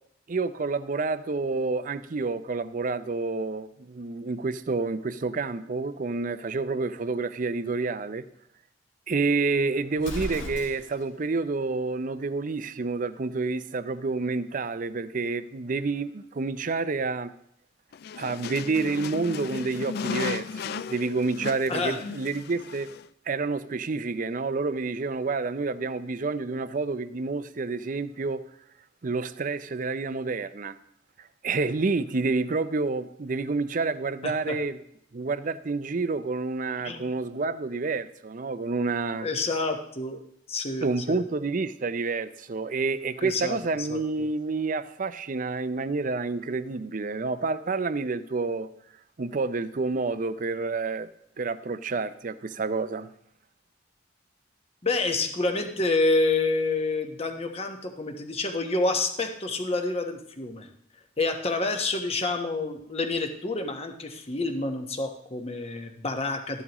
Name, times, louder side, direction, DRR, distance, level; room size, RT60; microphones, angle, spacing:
voice 1, 0.3-8.3 9.1-17.3 18.2-22.9 23.3-28.4 29.0-30.8 31.2-34.8 35.1-39.3 40.8-48.7 49.2-51.1 51.4-53.1, right 3 dB, 45° right, 13 dB, 0.5 m, -29 dB
Explosion, 9.9-11.1, equal, 80° left, 1.9 m, -36 dB
sound 1, 17.9-23.1, left 6 dB, 55° left, 0.3 m, -35 dB
voice 2, 34.2-34.6 36.8-37.1 39.2-40.2 40.5-41.2 43.2-44.3 54.8-60.7 61.2-66.6, left 3 dB, 35° left, 5 dB, 1.1 m, -28 dB
13.5 x 11.0 x 3.0 m, 0.73 s
head